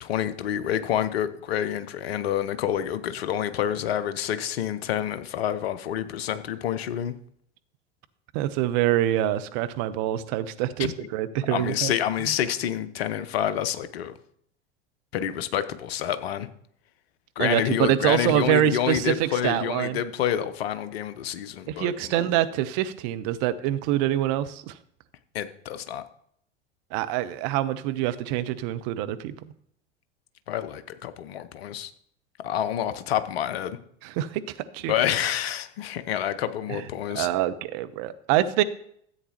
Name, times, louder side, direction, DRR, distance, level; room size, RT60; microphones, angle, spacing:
voice 1, 0.0-7.1 10.8-10.9 11.5-14.1 15.1-16.5 17.4-22.3 25.3-26.0 30.5-31.9 32.4-33.8 34.9-37.3, left 10 dB, 55° left, 12 dB, 0.8 m, -28 dB
voice 2, 8.3-11.9 17.4-20.0 21.7-24.8 26.9-29.5 34.0-34.4 34.7-34.9 36.7-36.8 37.1-38.6, right 13 dB, 40° right, 12 dB, 0.7 m, -25 dB
13.5 x 8.1 x 3.0 m, 0.68 s
figure-of-eight pair, 85°, 36 cm